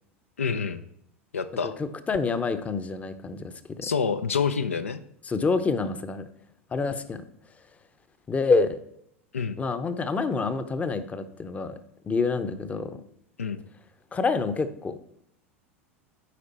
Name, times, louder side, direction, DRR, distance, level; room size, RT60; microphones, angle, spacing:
voice 1, 0.4-0.8 1.3-1.7 3.8-5.0 9.3-9.6 13.4-13.6, left 6 dB, 85° left, 10 dB, 0.4 m, -27 dB
voice 2, 1.6-3.9 5.2-6.3 6.7-7.3 8.3-8.8 9.6-11.8 12.0-13.0 14.1-15.0, left 4 dB, 20° left, 11 dB, 0.6 m, -27 dB
8.5 x 5.0 x 4.2 m, 0.73 s
hypercardioid pair, 85°, 7 cm